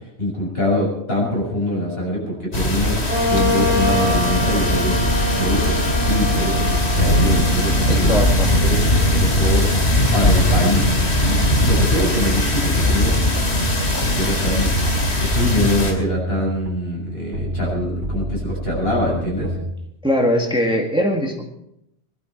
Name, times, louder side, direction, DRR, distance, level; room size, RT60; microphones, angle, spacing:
voice 1, 0.2-8.1 8.6-9.7 10.1-10.9 11.3-13.2 14.2-14.7 15.2-19.5, left 1 dB, 70° left, -3 dB, 7.0 m, -24 dB
sound 1, 2.5-15.9, left 1 dB, 85° left, 2.9 m, -19 dB
Wind instrument woodwind instrument, 3.1-10.5, left 1 dB, 20° left, 4.7 m, -26 dB
voice 2, 7.9-8.5 20.0-21.4, equal, 5° right, 1 dB, 1.9 m, -20 dB
sound 2, 9.6-19.7, right 1 dB, 70° right, 1.7 m, -31 dB
21.5 x 12.0 x 4.6 m, 0.80 s
omnidirectional pair, 1.1 m